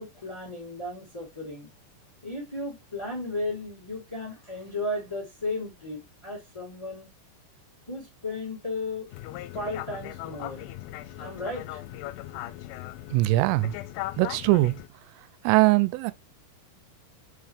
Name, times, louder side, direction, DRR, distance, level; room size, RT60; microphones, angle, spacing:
voice 1, 0.0-1.7 2.2-7.1 7.9-9.1 9.5-10.7 11.2-12.1, left 2 dB, 5° left, 2.4 m, -35 dB
sound 1, 9.1-14.9, left 15 dB, 85° left, 3.1 m, -38 dB
voice 2, 13.1-13.7 14.2-14.7 15.4-16.1, right 19 dB, 90° right, 3.2 m, -21 dB
6.7 x 5.7 x 3.4 m
omnidirectional pair, 5.7 m